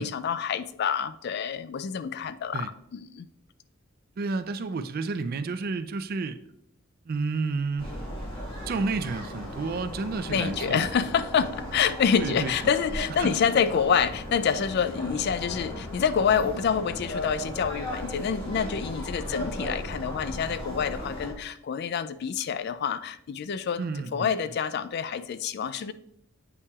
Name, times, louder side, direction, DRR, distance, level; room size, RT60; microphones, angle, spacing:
voice 1, 0.0-3.3 10.3-23.8 24.1-25.9, left 7 dB, 50° left, 14 dB, 0.3 m, -27 dB
voice 2, 4.2-6.4 7.1-8.0 8.7-11.0 12.2-12.5 13.2-13.3 23.8-24.3, right 4 dB, 45° right, 11 dB, 0.4 m, -31 dB
sound 1, 7.8-21.3, equal, 25° left, 1.5 m, -36 dB
8.2 x 5.6 x 2.3 m, 0.75 s
head